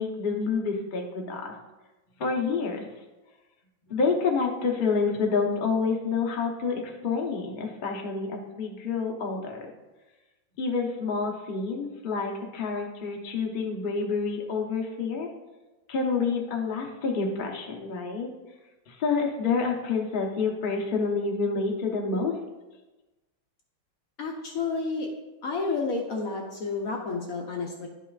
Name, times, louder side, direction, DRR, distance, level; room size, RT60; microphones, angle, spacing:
voice 1, 0.0-1.5 2.2-2.9 3.9-9.7 10.6-15.3 15.9-18.3 18.9-22.3, left 4 dB, 45° left, 1 dB, 0.6 m, -28 dB
voice 2, 24.2-25.1 25.4-27.9, left 4 dB, 60° left, 1 dB, 1.0 m, -30 dB
11.0 x 5.5 x 2.4 m, 1.1 s
omnidirectional pair, 2.1 m